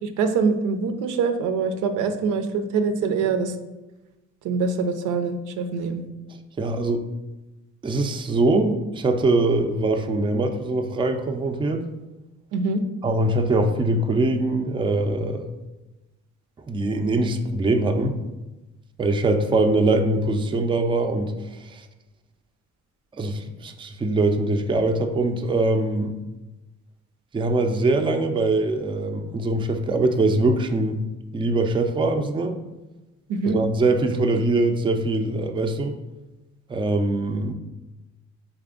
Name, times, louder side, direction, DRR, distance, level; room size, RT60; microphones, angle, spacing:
voice 1, 0.0-3.5 4.4-6.0 12.5-12.8 33.3-33.6, right 4 dB, 85° right, 8 dB, 0.5 m, -24 dB
voice 2, 6.6-7.0 7.8-11.8 13.0-15.5 16.7-18.1 19.0-21.3 21.6-21.8 23.2-26.1 27.3-31.0 31.3-32.6 33.5-35.9 36.7-37.5, right 2 dB, 15° right, 5 dB, 0.4 m, -22 dB
4.0 x 3.4 x 3.7 m, 1.0 s
cardioid pair, 90°, 30 cm